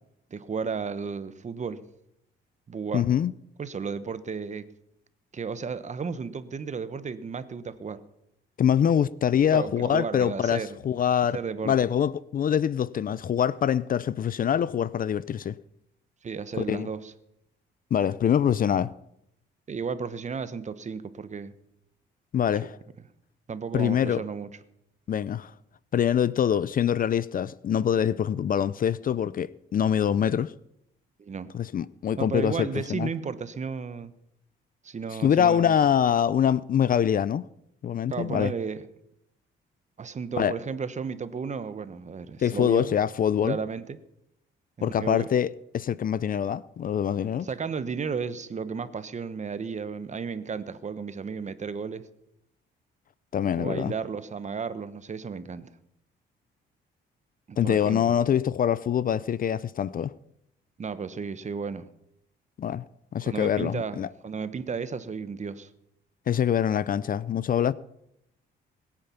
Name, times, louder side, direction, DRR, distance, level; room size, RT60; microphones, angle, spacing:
voice 1, 0.3-1.8 2.7-3.1 3.6-4.7 5.3-8.0 9.5-10.8 11.3-11.7 16.2-17.1 19.7-21.5 22.6-22.7 23.5-24.5 31.2-31.5 32.2-34.1 34.8-35.7 38.1-38.8 40.0-43.0 43.4-44.0 44.8-45.3 47.4-52.1 53.6-55.7 57.5-58.2 60.8-61.9 63.2-65.7, right 5 dB, 35° right, 1.1 m, -33 dB
voice 2, 2.9-3.3 8.6-11.4 11.6-15.6 16.7-16.9 17.9-18.9 22.3-22.8 23.7-24.2 25.1-25.5 25.9-30.5 31.5-33.1 35.2-37.5 37.8-38.5 40.4-40.5 42.4-43.6 44.8-45.5 45.7-47.5 53.3-53.9 57.6-60.1 62.6-62.8 63.1-64.1 66.3-67.7, left 9 dB, 45° left, 0.5 m, -24 dB
21.0 x 8.9 x 5.7 m
cardioid pair, 90°, 20 cm